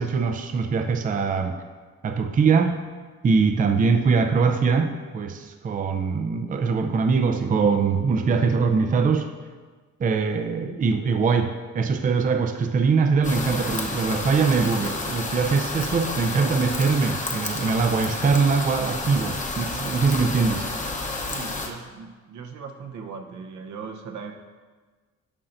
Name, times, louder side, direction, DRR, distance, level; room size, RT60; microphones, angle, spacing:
voice 1, 0.0-1.6 2.0-2.8 3.2-9.3 10.0-20.7, right 5 dB, 30° right, 6 dB, 0.4 m, -22 dB
sound 1, 13.2-21.7, left 2 dB, 25° left, 0.9 m, -30 dB
voice 2, 21.3-24.3, right 5 dB, 70° right, 3 dB, 0.9 m, -38 dB
9.8 x 5.6 x 2.6 m, 1.4 s
cardioid pair, 90°, 30 cm